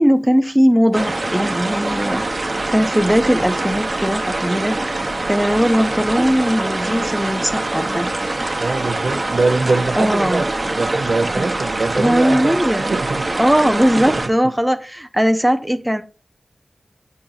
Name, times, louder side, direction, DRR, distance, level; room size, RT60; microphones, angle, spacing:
voice 1, 0.0-4.8 5.3-8.1 10.0-10.4 11.4-11.5 12.0-13.0 13.4-16.0, equal, 5° right, 0.7 m, -18 dB
sound 1, 0.9-14.3, right 2 dB, 40° right, 1.0 m, -24 dB
voice 2, 8.6-13.3 13.8-14.3, right 3 dB, 70° right, 0.6 m, -23 dB
8.9 x 4.2 x 4.0 m
wide cardioid pair, 100°, 0 cm